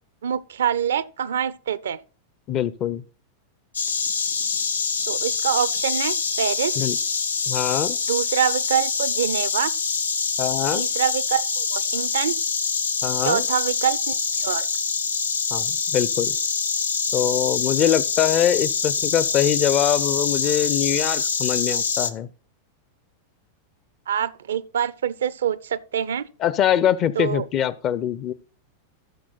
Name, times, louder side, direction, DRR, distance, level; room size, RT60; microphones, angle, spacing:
voice 1, 0.2-2.0 5.1-6.8 8.1-9.7 10.7-12.3 13.2-14.7 24.1-26.3 27.2-27.4, right 9 dB, 65° right, 0.5 m, -25 dB
voice 2, 2.5-3.0 6.8-7.0 7.5-8.0 10.4-10.9 13.0-13.4 15.5-16.3 17.1-22.3 26.4-28.3, left 10 dB, 35° left, 0.6 m, -23 dB
Insect, 3.7-22.1, left 5 dB, 70° left, 0.7 m, -25 dB
14.0 x 6.1 x 4.0 m
figure-of-eight pair, 90°, 0 cm